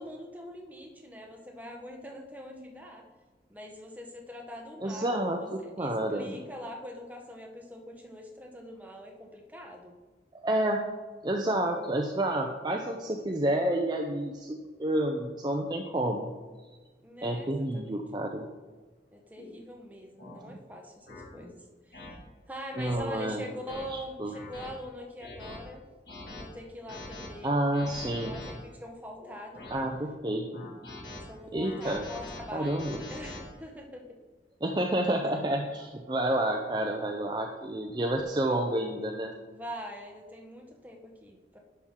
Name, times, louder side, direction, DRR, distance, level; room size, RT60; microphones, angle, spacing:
voice 1, 0.0-3.0 3.5-10.0 17.0-18.0 19.1-21.6 21.8-22.2 22.5-25.8 26.2-27.6 28.2-29.6 31.1-34.0 39.5-41.6, equal, 10° right, 1 dB, 1.0 m, -43 dB
voice 2, 4.8-5.4 5.8-6.4 10.4-10.9 11.2-16.3 17.2-18.5 22.8-23.4 24.2-24.3 27.4-28.4 29.7-30.7 31.5-32.0 32.5-33.0 34.6-39.3, right 1 dB, 25° right, 2 dB, 0.5 m, -29 dB
sound 1, 19.4-19.5 20.2-20.4 21.1-21.2 21.9-22.1 22.8-22.9 23.5-23.8 24.3-24.7 25.2-25.6 26.1-26.4 26.9-27.3 27.7-28.5 29.2-29.9 30.5-31.2 31.6-33.4, left 2 dB, 60° left, 2.1 m, -43 dB
10.5 x 5.6 x 3.7 m, 1.3 s
head